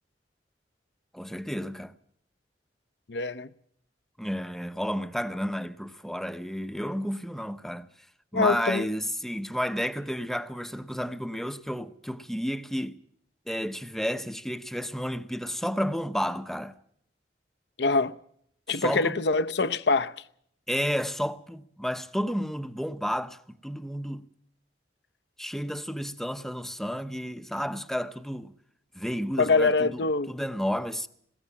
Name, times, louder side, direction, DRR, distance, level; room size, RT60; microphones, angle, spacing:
voice 1, 1.1-1.9 4.2-7.9 8.3-13.0 13.5-16.8 18.7-19.2 20.7-24.3 25.4-28.5 28.9-31.1, equal, ahead, 0.7 m, -31 dB
voice 2, 3.1-3.5 8.3-8.8 17.8-18.1 18.7-20.2 29.4-30.3, left 3 dB, 75° left, 0.8 m, -24 dB
20.0 x 17.5 x 7.3 m
head